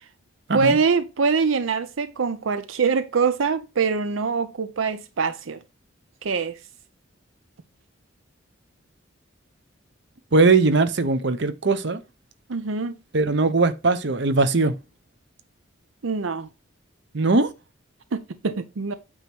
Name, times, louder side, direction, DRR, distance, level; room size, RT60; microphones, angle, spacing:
voice 1, 0.5-5.6 6.2-6.6 12.5-12.9 16.0-16.5 18.1-19.0, right 5 dB, 85° right, 0.6 m, -24 dB
voice 2, 10.3-12.0 13.1-14.7 17.1-17.5, right 3 dB, 60° right, 0.9 m, -20 dB
8.8 x 3.1 x 6.0 m
head